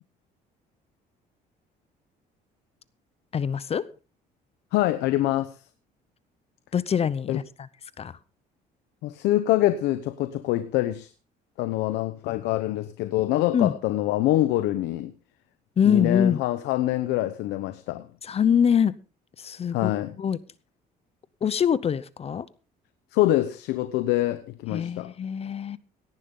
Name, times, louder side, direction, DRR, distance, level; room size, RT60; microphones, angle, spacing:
voice 1, 3.3-3.9 6.7-7.4 8.0-8.2 13.5-13.7 15.8-16.4 18.2-18.9 19.4-19.9 20.2-20.4 21.4-22.5 24.7-25.8, left 8 dB, 35° left, 0.7 m, -24 dB
voice 2, 4.7-5.6 7.3-7.4 9.0-11.1 11.6-15.1 15.9-18.1 19.7-20.1 23.1-25.1, left 15 dB, 90° left, 0.9 m, -25 dB
17.5 x 11.0 x 3.7 m
cardioid pair, 110°, 17 cm